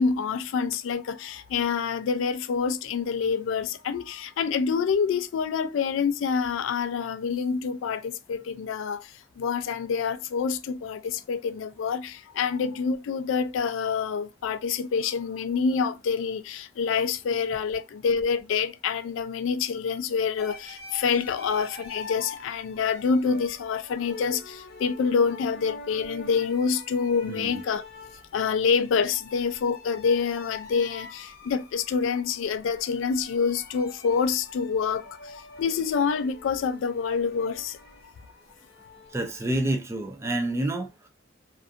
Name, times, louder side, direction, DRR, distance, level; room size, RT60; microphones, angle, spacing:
voice 1, 0.0-27.8 28.3-37.8, left 6 dB, 80° left, 0.3 m, -27 dB
sound 1, 20.4-39.7, left 3 dB, 50° left, 0.7 m, -45 dB
voice 2, 27.3-27.6 39.1-41.1, right 1 dB, 15° right, 0.3 m, -28 dB
2.5 x 2.4 x 2.4 m
head